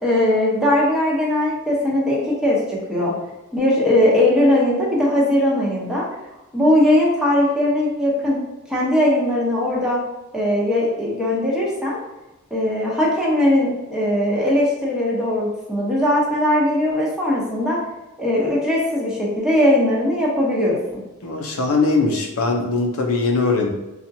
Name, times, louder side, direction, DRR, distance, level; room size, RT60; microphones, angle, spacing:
voice 1, 0.0-3.1 3.5-6.0 6.5-8.4 8.7-10.0 10.3-12.0 12.5-17.8 18.2-21.0, left 1 dB, 5° right, -5 dB, 0.8 m, -19 dB
voice 2, 21.2-23.7, left 3 dB, 80° left, 1 dB, 0.6 m, -20 dB
4.2 x 2.4 x 2.7 m, 1.0 s
head